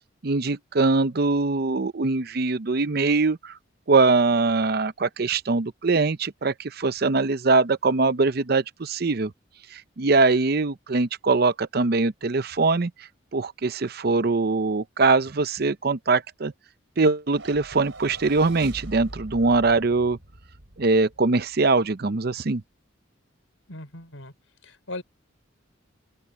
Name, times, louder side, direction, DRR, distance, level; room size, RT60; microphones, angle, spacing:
voice 1, 0.2-3.5 3.9-9.3 9.7-16.5 17.0-20.2 20.8-22.6, right 3 dB, 50° right, 0.7 m, -22 dB
sound 1, 17.3-21.8, right 1 dB, 70° right, 4.2 m, -43 dB
voice 2, 23.7-24.3 24.6-25.0, left 2 dB, 90° left, 5.7 m, -38 dB
open air
head